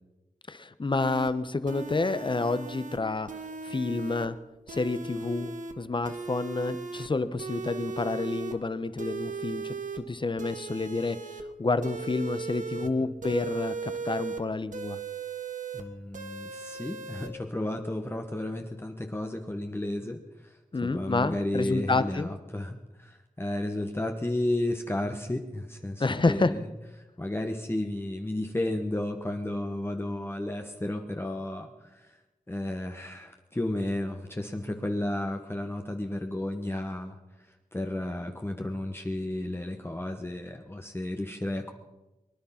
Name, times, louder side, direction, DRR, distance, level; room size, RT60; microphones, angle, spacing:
voice 1, 0.5-3.3 3.6-4.4 4.7-11.2 11.6-15.0 20.7-22.3 26.0-26.5, left 3 dB, 35° left, 13 dB, 0.9 m, -29 dB
sound 1, 1.0-1.3 1.7-3.0 3.3-4.3 4.7-5.7 6.0-7.1 7.4-8.5 9.0-10.0 10.4-11.4 11.8-12.9 13.2-14.4 14.7-15.8 16.1-17.3, right 4 dB, 70° right, 1.6 m, -37 dB
voice 2, 12.8-13.2 15.7-26.6 27.2-32.2 32.5-41.7, left 1 dB, 15° left, 4 dB, 1.2 m, -33 dB
23.0 x 10.5 x 5.8 m, 1.1 s
wide cardioid pair, 75°, 14 cm